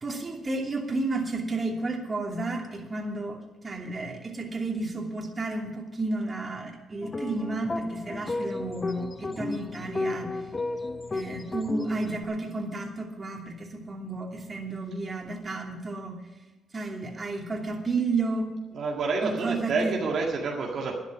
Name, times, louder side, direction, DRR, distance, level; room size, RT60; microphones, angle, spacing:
voice 1, 0.0-10.5 11.1-16.2 16.7-18.5 19.2-20.0, right 3 dB, 35° right, 1 dB, 2.8 m, -32 dB
sound 1, 7.0-12.3, left 3 dB, 35° left, 0.9 m, -33 dB
voice 2, 18.7-21.0, right 4 dB, 65° right, -1 dB, 1.9 m, -28 dB
11.5 x 10.5 x 6.2 m, 1.1 s
supercardioid pair, 60°, 0 cm